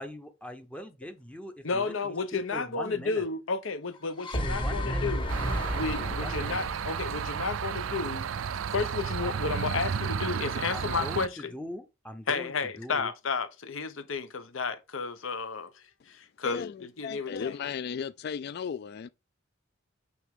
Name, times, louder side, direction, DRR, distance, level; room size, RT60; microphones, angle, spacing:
voice 1, 0.0-3.2 4.4-5.1 6.0-6.7 9.2-9.3 10.7-13.1, left 1 dB, 5° left, 0.6 m, -42 dB
voice 2, 1.6-5.3 5.7-8.3 8.7-11.5 12.3-17.6, left 4 dB, 75° left, 0.9 m, -32 dB
sound 1, 4.0-8.1, equal, 25° left, 1.2 m, -33 dB
sound 2, 5.3-11.3, right 6 dB, 80° right, 0.4 m, -32 dB
voice 3, 16.4-19.1, left 7 dB, 55° left, 0.3 m, -35 dB
9.2 x 3.6 x 3.6 m
head